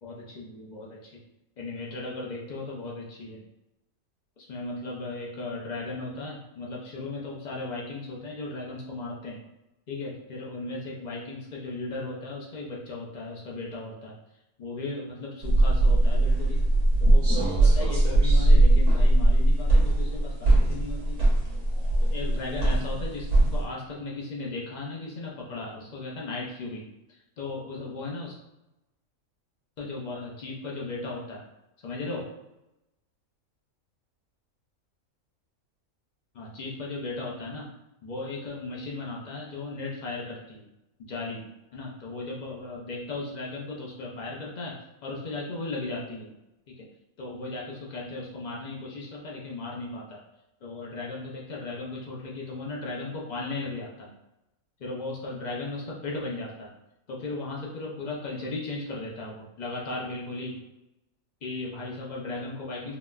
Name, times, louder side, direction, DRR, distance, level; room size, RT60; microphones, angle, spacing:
voice 1, 0.0-1.2 1.6-3.4 4.4-9.4 9.9-14.1 14.6-16.7 17.0-21.2 22.0-28.3 29.8-31.5 31.8-32.3 36.3-37.7 38.0-40.6 41.1-46.3 46.7-46.9 47.2-50.2 50.6-54.1 54.8-56.7 57.1-60.6 61.4-63.0, left 2 dB, 75° left, -3 dB, 0.4 m, -36 dB
sound 1, 15.4-23.6, right 1 dB, 35° right, 0.8 m, -20 dB
3.8 x 2.1 x 2.3 m, 0.93 s
omnidirectional pair, 1.5 m